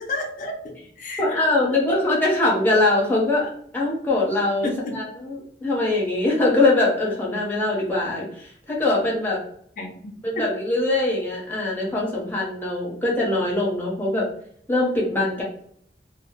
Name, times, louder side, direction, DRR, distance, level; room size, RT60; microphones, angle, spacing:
voice 1, 0.1-1.4 1.7-2.0 4.6-4.9 9.8-10.5, left 2 dB, 45° left, 2 dB, 0.4 m, -31 dB
voice 2, 1.2-9.4 10.2-14.3 14.7-15.4, left 2 dB, 10° left, -4 dB, 0.7 m, -22 dB
2.1 x 2.0 x 2.9 m, 0.63 s
head